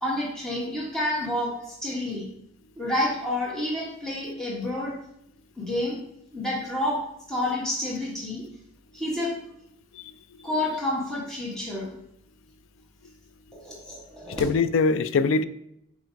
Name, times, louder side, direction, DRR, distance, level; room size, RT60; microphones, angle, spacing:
voice 1, 0.0-2.3 2.8-4.9 5.6-6.0 6.3-7.0 7.3-8.4 8.9-9.3 10.4-11.9 13.5-14.4, left 1 dB, 5° left, 1.4 m, -29 dB
voice 2, 14.3-15.4, left 4 dB, 80° left, 0.4 m, -23 dB
5.1 x 4.9 x 4.5 m
head